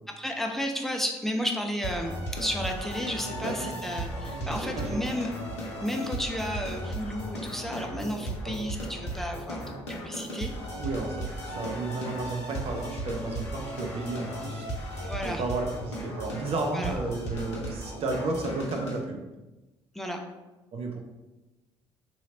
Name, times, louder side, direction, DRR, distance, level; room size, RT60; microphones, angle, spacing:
voice 1, 0.2-2.1 2.4-5.3 5.8-10.5 15.0-15.4 16.7-16.9 19.9-20.2, equal, ahead, 2 dB, 0.5 m, -32 dB
sound 1, 1.8-19.0, right 1 dB, 80° left, 0.6 m, -36 dB
voice 2, 3.4-3.8 4.2-5.0 8.4-8.5 10.8-14.7 15.2-19.2 20.7-21.0, right 3 dB, 40° right, 2 dB, 0.6 m, -33 dB
2.9 x 2.8 x 3.8 m, 1.1 s
figure-of-eight pair, 45°, 15 cm